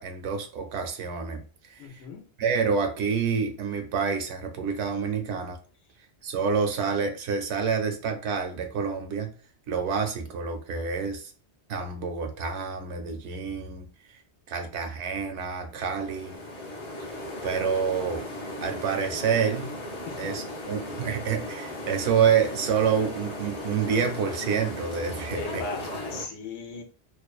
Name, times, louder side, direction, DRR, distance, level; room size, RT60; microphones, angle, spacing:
voice 1, 0.0-1.4 1.7-1.8 2.4-5.6 6.2-9.3 9.7-11.3 11.7-13.9 14.5-16.4 17.1-17.2 17.4-18.2 18.6-19.7 20.2-25.6 25.9-26.0, right 6 dB, 85° right, 0.9 m, -28 dB
voice 2, 1.8-2.2 20.0-20.6 25.3-26.8, left 4 dB, 80° left, 0.9 m, -38 dB
sound 1, 15.7-26.3, left 1 dB, 35° left, 0.5 m, -37 dB
2.5 x 2.1 x 2.3 m
omnidirectional pair, 1.1 m